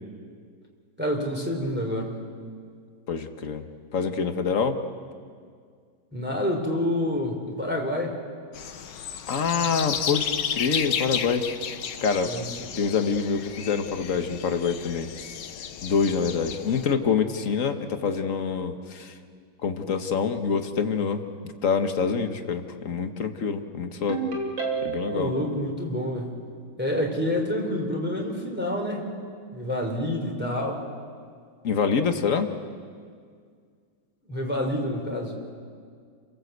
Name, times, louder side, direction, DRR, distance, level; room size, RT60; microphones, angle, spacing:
voice 1, 1.0-2.2 6.1-8.2 12.3-12.5 25.0-26.4 26.8-29.0 29.5-30.8 34.3-35.4, left 1 dB, 5° right, 0 dB, 3.5 m, -28 dB
voice 2, 3.1-3.6 3.9-4.8 9.3-11.5 12.0-12.4 12.7-15.1 15.8-19.2 19.6-24.3 24.8-25.3 31.6-32.5, left 5 dB, 45° left, 7 dB, 1.5 m, -26 dB
sound 1, 8.5-16.9, left 8 dB, 65° left, 1.6 m, -33 dB
Ringtone, 24.1-25.3, right 4 dB, 85° right, 4.0 m, -29 dB
30.0 x 18.5 x 8.0 m, 2.1 s
omnidirectional pair, 2.1 m